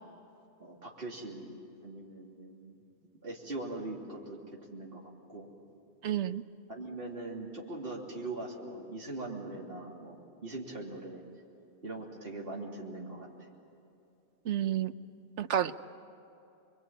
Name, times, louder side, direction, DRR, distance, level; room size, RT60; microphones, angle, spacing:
voice 1, 0.6-1.6 1.8-2.8 3.2-4.4 4.7-5.5 6.7-11.2 11.8-13.3, right 2 dB, 55° right, -3 dB, 3.4 m, -41 dB
voice 2, 6.0-6.4 14.4-14.9 15.4-15.8, right 10 dB, 80° right, 12 dB, 1.1 m, -30 dB
26.5 x 23.5 x 9.0 m, 2.8 s
omnidirectional pair, 1.2 m